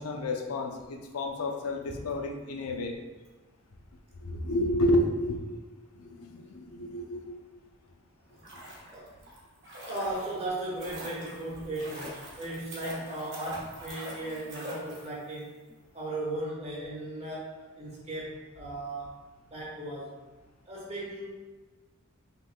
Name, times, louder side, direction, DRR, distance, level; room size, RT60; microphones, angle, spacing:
voice 1, 0.0-3.0 4.2-5.4 5.9-7.4, left 1 dB, 80° left, 3 dB, 0.5 m, -30 dB
sound 1, 8.2-15.4 15.7-15.8, equal, 55° right, 1.3 m, -44 dB
voice 2, 9.9-15.6 15.9-19.2 19.5-20.2 20.7-21.3, right 1 dB, 30° right, -5 dB, 1.3 m, -36 dB
5.7 x 3.6 x 2.2 m, 1.2 s
head